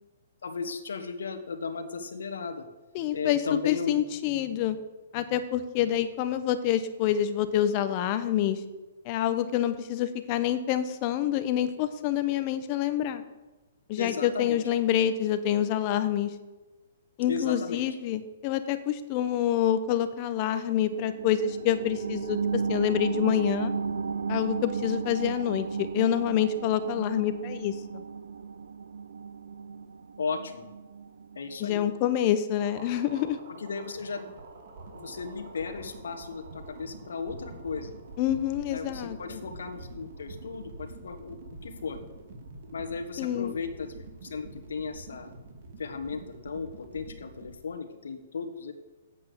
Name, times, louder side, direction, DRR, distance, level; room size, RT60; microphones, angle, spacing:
voice 1, 0.4-2.7 3.1-4.0 14.0-14.6 17.3-17.8 30.2-30.7 31.3-31.8 33.6-34.3 34.9-38.0 38.7-42.0 42.7-45.3 45.8-48.7, left 5 dB, 80° left, 8 dB, 1.5 m, -35 dB
voice 2, 2.9-4.8 5.1-8.6 9.0-13.2 13.9-16.3 17.2-23.7 24.3-28.0 31.6-33.4 38.2-39.4 43.2-43.5, left 10 dB, 35° left, 11 dB, 1.0 m, -27 dB
sound 1, 20.9-32.0 32.4-32.5, right 5 dB, 85° right, 0.5 m, -34 dB
sound 2, 32.6-47.5, right 3 dB, 60° right, 2.4 m, -46 dB
8.5 x 7.9 x 7.0 m, 1.1 s
hypercardioid pair, 140°, 0 cm